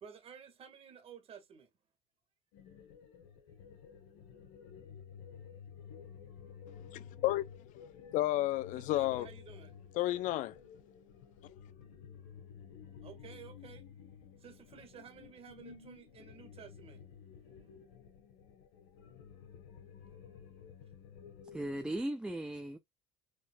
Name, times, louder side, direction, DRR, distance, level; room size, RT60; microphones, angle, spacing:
voice 1, 0.0-1.7 8.8-9.7 13.0-13.9 14.4-17.0, right 7 dB, 40° right, 1.8 m, -53 dB
sound 1, 2.5-22.0, left 7 dB, 85° left, 1.6 m, -53 dB
voice 2, 6.9-7.8 8.1-9.3 10.0-10.5, left 15 dB, 60° left, 0.6 m, -32 dB
voice 3, 21.5-22.8, right 1 dB, 5° right, 0.6 m, -37 dB
5.2 x 3.7 x 2.3 m
supercardioid pair, 105°, 15 cm